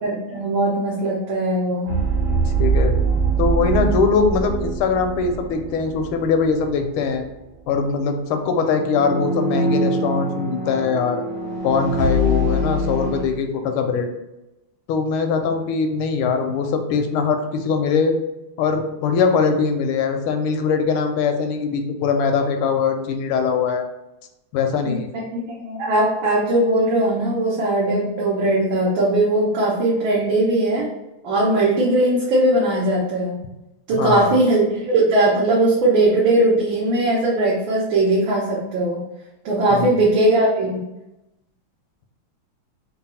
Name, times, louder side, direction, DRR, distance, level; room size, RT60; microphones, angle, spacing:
voice 1, 0.0-2.0 24.8-25.0 25.5-30.9 31.2-33.4 33.9-39.0 39.4-40.8, right 1 dB, 70° right, -6 dB, 1.5 m, -19 dB
sound 1, 1.9-6.7 7.0-7.2 8.7-13.2, right 2 dB, 45° right, 1.6 m, -23 dB
voice 2, 2.6-2.9 3.4-7.2 7.7-11.2 11.6-14.1 14.9-18.1 18.6-23.8 24.5-25.1 34.0-34.4 39.7-39.9, left 5 dB, 85° left, 6 dB, 1.4 m, -21 dB
3.9 x 2.3 x 4.2 m, 0.95 s
omnidirectional pair, 2.3 m